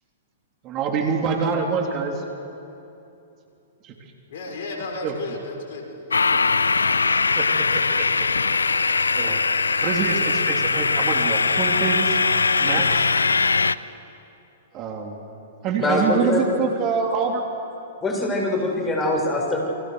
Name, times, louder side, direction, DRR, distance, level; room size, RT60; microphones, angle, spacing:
voice 1, 0.6-2.2 3.8-3.9 5.0-5.2 7.4-8.3 9.1-9.4 9.8-12.2 12.6-13.1 14.7-15.2 15.6-17.4, right 5 dB, 35° right, 2 dB, 3.7 m, -26 dB
voice 2, 4.3-6.4, left 2 dB, 65° left, 2 dB, 5.7 m, -34 dB
sound 1, 6.1-13.7, left 4 dB, 90° left, 0.6 m, -21 dB
voice 3, 15.8-16.6 18.0-19.6, left 2 dB, 15° left, 0 dB, 6.9 m, -23 dB
29.5 x 24.0 x 6.7 m, 2.8 s
hypercardioid pair, 115°, 0 cm